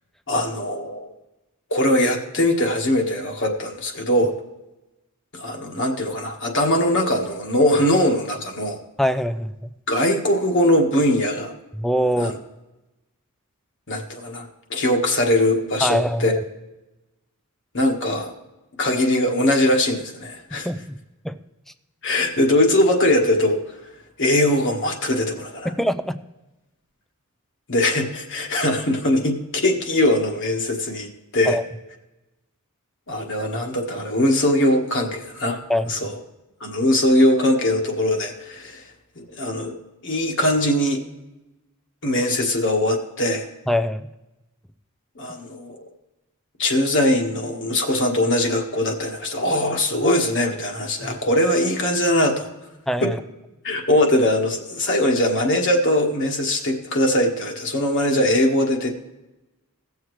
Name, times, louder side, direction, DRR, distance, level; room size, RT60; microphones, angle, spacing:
voice 1, 0.3-1.1 1.7-4.3 5.3-8.8 9.9-11.5 12.2-12.4 13.9-16.4 17.7-18.3 18.8-20.7 22.0-23.6 24.2-25.7 27.7-31.1 31.3-31.6 33.1-35.6 35.9-36.2 36.6-38.8 39.2-39.8 40.0-41.0 42.0-43.5 45.2-45.8 46.6-52.5 53.0-53.1 53.6-58.9, left 1 dB, 55° left, 2 dB, 1.5 m, -21 dB
voice 2, 9.0-9.7 11.7-12.3 15.8-16.4 20.6-20.9 21.2-21.4 25.6-26.2 31.5-31.6 35.7-35.9 43.7-44.1 51.0-51.2 52.9-53.2, equal, ahead, 10 dB, 0.4 m, -23 dB
18.0 x 7.3 x 3.2 m, 0.99 s
head